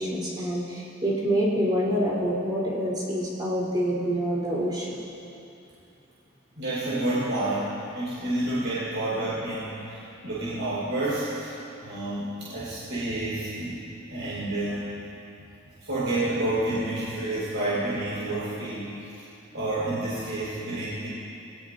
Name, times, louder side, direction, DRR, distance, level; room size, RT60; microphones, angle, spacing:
voice 1, 0.0-5.0, equal, 20° right, -7 dB, 3.5 m, -26 dB
voice 2, 6.6-11.5 11.8-13.8 14.1-14.9 15.8-18.9 19.5-21.1, right 1 dB, 65° right, -11 dB, 4.3 m, -29 dB
20.0 x 19.0 x 2.7 m, 2.7 s
head